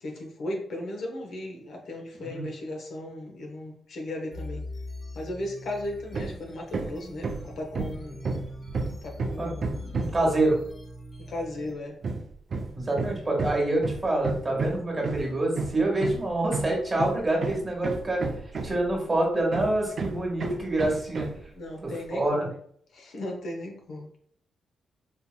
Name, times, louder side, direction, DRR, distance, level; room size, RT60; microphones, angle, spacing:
voice 1, 0.0-4.6 5.1-8.2 9.0-9.8 11.2-12.0 21.5-22.5 22.9-24.2, left 1 dB, 70° left, 1 dB, 0.8 m, -36 dB
voice 2, 2.1-2.5 9.4-10.6 12.7-18.2 18.6-21.3 21.8-22.5, right 2 dB, 25° right, -2 dB, 1.4 m, -26 dB
sound 1, 4.3-11.7, left 1 dB, 25° left, 1.1 m, -42 dB
Hammer, 6.1-6.4 6.7-10.3 12.0-19.0 19.5-21.4, right 3 dB, 50° right, 0.4 m, -32 dB
4.4 x 2.8 x 2.2 m, 0.62 s
cardioid pair, 95°, 0 cm